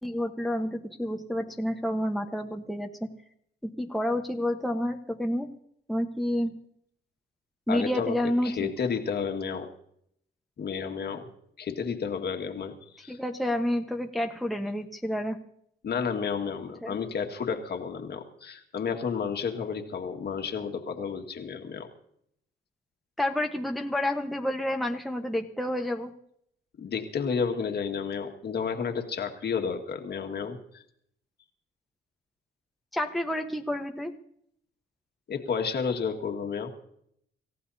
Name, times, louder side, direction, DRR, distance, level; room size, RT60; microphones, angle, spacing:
voice 1, 0.0-2.9 3.6-5.5 5.9-6.5 7.7-8.7 13.1-15.4 16.8-17.0 23.2-26.1 32.9-34.1, left 1 dB, ahead, 3 dB, 1.1 m, -29 dB
voice 2, 7.7-8.2 8.4-9.7 10.6-11.3 11.6-13.2 15.8-21.9 26.8-30.8 35.3-36.7, left 6 dB, 55° left, 4 dB, 1.9 m, -31 dB
27.0 x 15.0 x 2.8 m, 0.71 s
cardioid pair, 90°, 20 cm